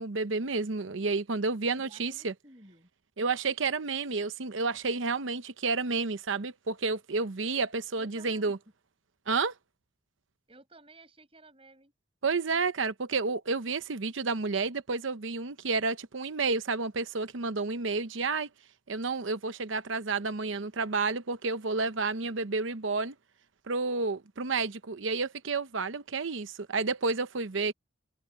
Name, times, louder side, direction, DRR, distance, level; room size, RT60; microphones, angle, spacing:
voice 1, 0.0-2.3 3.2-8.6 9.3-9.5 12.2-18.5 18.9-23.1 23.7-27.7, right 4 dB, 80° right, 0.8 m, -30 dB
voice 2, 1.6-2.9 8.0-8.5 10.5-11.9, right 2 dB, 30° right, 5.8 m, -55 dB
head